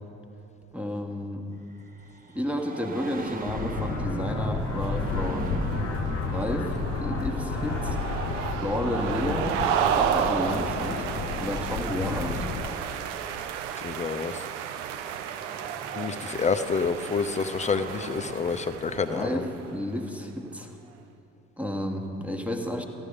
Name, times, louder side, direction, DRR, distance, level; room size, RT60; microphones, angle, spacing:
voice 1, 0.7-1.5 2.3-5.7 6.3-8.0 8.5-9.6 9.9-11.1 11.4-12.5 19.1-20.8 21.6-22.8, left 1 dB, 5° right, 4 dB, 1.3 m, -31 dB
sound 1, 1.6-12.2 13.5-13.6 14.6-18.4, right 3 dB, 25° right, 0.9 m, -39 dB
sound 2, 3.5-12.7, left 5 dB, 45° left, 0.9 m, -32 dB
sound 3, 4.1-19.8, right 9 dB, 75° right, 0.6 m, -32 dB
voice 2, 13.8-14.4 15.9-19.5, left 5 dB, 20° left, 10 dB, 0.6 m, -28 dB
14.0 x 11.5 x 5.1 m, 3.0 s
figure-of-eight pair, 50°, 36 cm